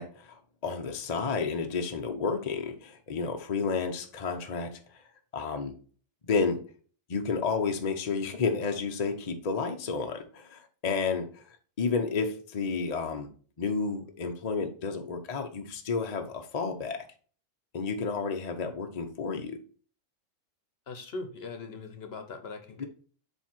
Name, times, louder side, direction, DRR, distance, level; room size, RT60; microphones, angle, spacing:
voice 1, 0.0-5.7 6.2-6.6 7.1-11.4 11.8-13.3 13.6-17.0 17.7-19.6 22.8-22.9, left 5 dB, 40° left, 4 dB, 0.7 m, -31 dB
voice 2, 20.9-22.9, left 3 dB, 55° left, 7 dB, 1.0 m, -40 dB
7.3 x 3.3 x 4.4 m, 0.42 s
omnidirectional pair, 1.3 m